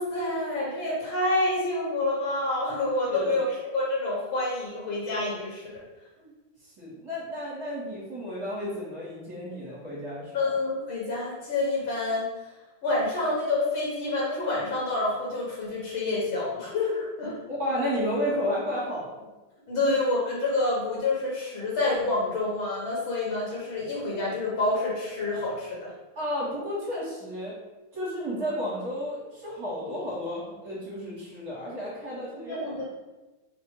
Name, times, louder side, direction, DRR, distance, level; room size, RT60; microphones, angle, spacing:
voice 1, 0.0-5.8 10.3-12.5 12.8-17.3 19.7-25.9 32.5-32.8, left 2 dB, 70° left, -5 dB, 2.0 m, -28 dB
voice 2, 3.0-3.4 6.2-6.3 6.8-10.4 17.5-19.2 19.8-19.9 26.2-27.5 27.9-32.8, equal, 45° right, -7 dB, 1.8 m, -32 dB
4.3 x 2.5 x 4.6 m, 1.1 s
omnidirectional pair, 2.4 m